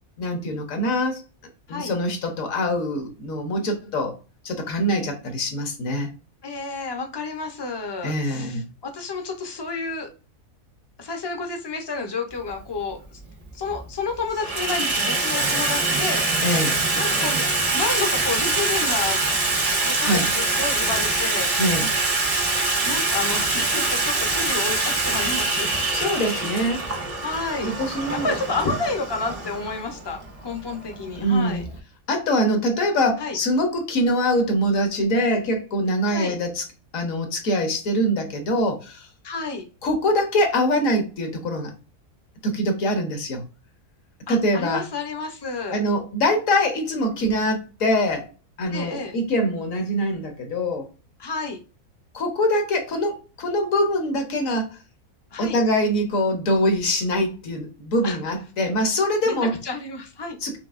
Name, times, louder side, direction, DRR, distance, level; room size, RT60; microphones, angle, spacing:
voice 1, 0.2-1.2 1.7-4.1 4.4-6.1 8.0-8.7 16.4-16.8 20.0-20.3 21.6-21.9 25.9-26.9 27.6-28.3 31.2-31.7 32.1-36.6 36.9-39.1 39.8-41.7 42.4-43.4 44.3-44.8 45.7-48.3 48.6-50.9 52.1-54.8 55.4-59.6 60.4-60.6, equal, 60° left, 1.3 m, -23 dB
voice 2, 6.4-10.1 11.0-13.2 13.5-16.3 16.9-19.2 19.8-21.6 22.8-25.7 27.2-27.7 28.1-31.6 33.2-33.4 36.1-36.4 39.2-39.6 44.3-45.8 48.7-49.1 51.2-51.6 55.3-55.6 58.0-58.2 59.2-60.4, left 3 dB, 25° left, 0.5 m, -30 dB
Water tap faucet / Sink (filling or washing), 12.4-12.5 13.5-13.9 14.2-31.8, right 3 dB, 35° right, 0.5 m, -24 dB
5.8 x 2.8 x 2.5 m
omnidirectional pair, 1.6 m